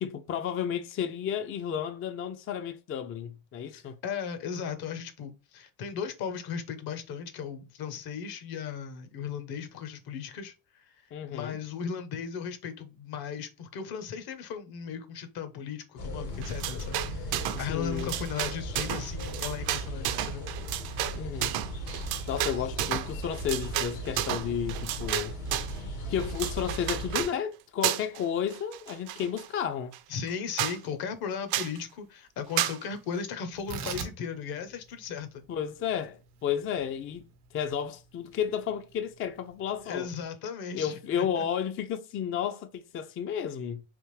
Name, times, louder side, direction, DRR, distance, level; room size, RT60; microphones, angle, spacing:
voice 1, 0.0-4.0 11.1-11.6 17.5-18.1 21.1-21.6 22.3-25.4 26.1-29.9 35.5-40.1 40.7-43.8, left 8 dB, 35° left, 0.4 m, -32 dB
voice 2, 3.7-20.5 30.1-35.4 39.8-41.5, left 7 dB, 60° left, 0.9 m, -37 dB
sound 1, 16.0-27.2, equal, 85° left, 1.5 m, -37 dB
sound 2, 16.4-17.7 17.9-25.8 26.2-27.3 27.8-28.2 28.5-29.5 29.9-30.0 30.3-30.4 30.6-30.8 31.5-31.8 32.6-32.8, right 13 dB, 65° right, 0.5 m, -32 dB
Tearing, 33.5-40.2, right 6 dB, 85° right, 0.9 m, -44 dB
3.5 x 2.5 x 3.2 m
supercardioid pair, 90°, 42 cm